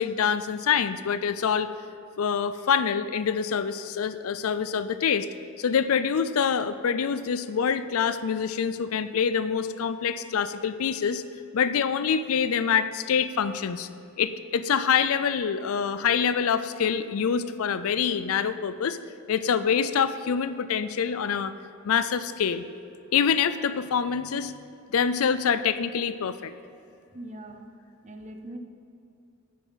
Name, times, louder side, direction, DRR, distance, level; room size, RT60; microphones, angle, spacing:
voice 1, 0.0-1.7 2.2-5.3 5.6-11.2 11.5-13.9 14.2-19.0 19.3-21.5 21.8-22.6 23.1-24.5 24.9-26.5, left 7 dB, 75° left, 13 dB, 0.4 m, -25 dB
voice 2, 27.1-27.8 28.0-28.6, right 1 dB, 35° right, 5 dB, 0.8 m, -41 dB
9.7 x 6.8 x 5.6 m, 2.7 s
head